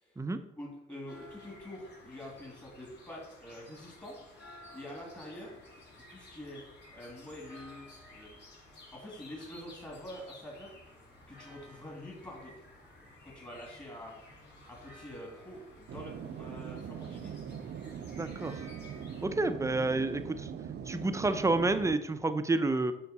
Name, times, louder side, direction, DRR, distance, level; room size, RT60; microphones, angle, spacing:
voice 1, 0.6-4.2 4.7-5.5 6.1-6.6 6.9-7.9 8.1-8.4 8.9-10.7 11.3-12.6 13.2-14.1 14.7-17.3, left 1 dB, 20° left, -2 dB, 2.2 m, -46 dB
sound 1, 1.1-19.3, left 1 dB, 60° left, 2.8 m, -54 dB
sound 2, 15.9-22.0, right 8 dB, 60° right, 0.6 m, -41 dB
voice 2, 18.2-18.6 19.2-20.5 20.9-22.9, right 2 dB, 15° right, 9 dB, 0.6 m, -29 dB
6.9 x 5.8 x 4.1 m, 0.91 s
cardioid pair, 90°, 20 cm